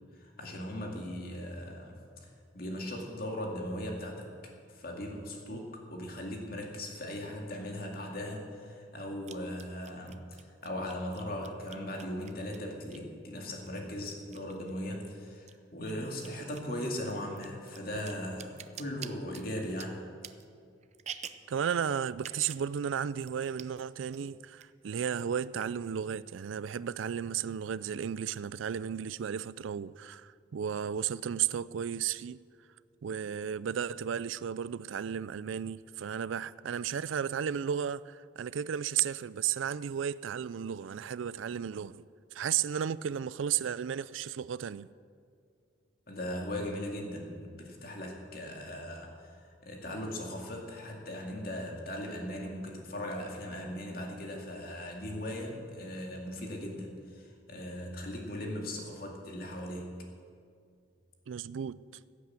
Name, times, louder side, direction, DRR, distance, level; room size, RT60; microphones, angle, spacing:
voice 1, 0.2-2.0 2.5-4.3 4.7-20.1 46.1-60.0, left 1 dB, 50° left, 2.3 m, -39 dB
sound 1, 7.5-7.6 9.2-13.2 13.5-15.1 15.3-21.5 22.1-22.7 22.9-23.0 23.2-23.8 24.1-24.6 25.0-25.9, right 8 dB, 35° right, 0.5 m, -48 dB
voice 2, 21.5-32.4 33.0-42.0 42.3-44.9 61.3-61.8, right 8 dB, 90° right, 0.4 m, -34 dB
16.0 x 8.4 x 7.6 m
head